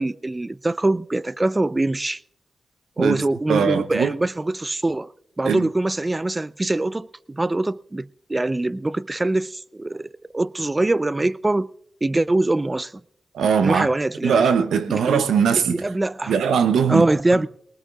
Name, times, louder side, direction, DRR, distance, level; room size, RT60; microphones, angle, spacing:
voice 1, 0.0-2.2 3.0-5.1 5.4-10.1 10.3-11.7 12.0-12.9 13.6-14.4 14.9-15.2 15.7-16.3 16.9-17.5, right 2 dB, 25° right, 0.5 m, -23 dB
voice 2, 3.5-4.1 5.4-5.7 13.3-13.9 14.2-15.8 16.3-17.1, right 6 dB, 90° right, 0.7 m, -20 dB
22.5 x 19.5 x 2.4 m
cardioid pair, 50°, 0 cm